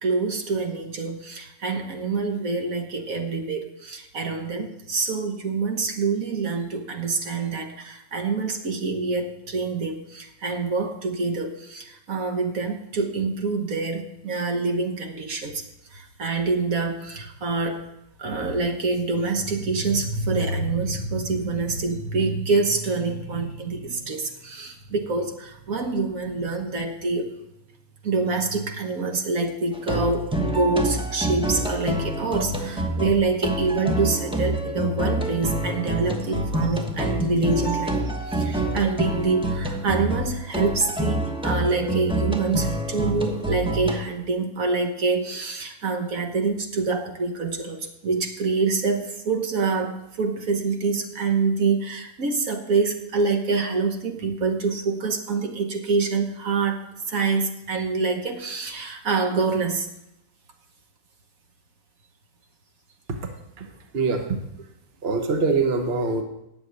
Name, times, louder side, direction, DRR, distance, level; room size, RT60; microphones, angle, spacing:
voice 1, 0.0-15.6 15.9-17.8 18.2-27.3 28.0-38.0 38.3-59.9, right 4 dB, 65° right, 4 dB, 1.7 m, -26 dB
sound 1, 29.7-44.0, right 1 dB, 5° right, 1.0 m, -27 dB
voice 2, 63.9-64.4 65.0-66.2, right 4 dB, 45° right, 4 dB, 1.3 m, -23 dB
9.9 x 7.1 x 9.3 m, 0.84 s
omnidirectional pair, 1.6 m